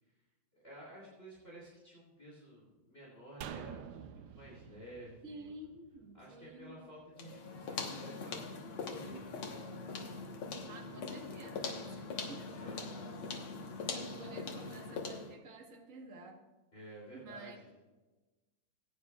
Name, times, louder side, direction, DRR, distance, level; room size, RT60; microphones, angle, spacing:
voice 1, 0.5-5.5 6.1-9.6 12.5-13.0 16.7-17.7, right 1 dB, 25° left, -5 dB, 3.3 m, -52 dB
sound 1, 3.4-6.7 7.0-7.1, right 9 dB, 70° right, 1.2 m, -48 dB
voice 2, 5.2-6.8 10.7-12.8 13.9-16.4 17.1-17.6, right 2 dB, 40° right, 2 dB, 1.7 m, -51 dB
sound 2, 7.2-15.4, left 4 dB, 80° left, 2.2 m, -42 dB
20.5 x 9.6 x 2.4 m, 1.2 s
omnidirectional pair, 2.3 m